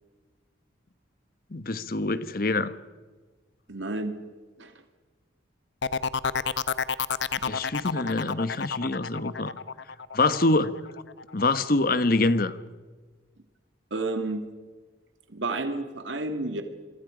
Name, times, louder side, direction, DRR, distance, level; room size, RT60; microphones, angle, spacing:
voice 1, 1.5-2.7 7.4-9.5 10.1-10.8 11.3-12.6, left 2 dB, 50° left, 1.1 m, -25 dB
voice 2, 3.7-4.1 4.6-4.7 13.9-14.4 15.3-16.6, right 2 dB, 85° right, 1.9 m, -30 dB
sound 1, 5.8-11.4 11.8-12.3, left 5 dB, 75° left, 0.8 m, -30 dB
28.0 x 23.5 x 5.0 m
head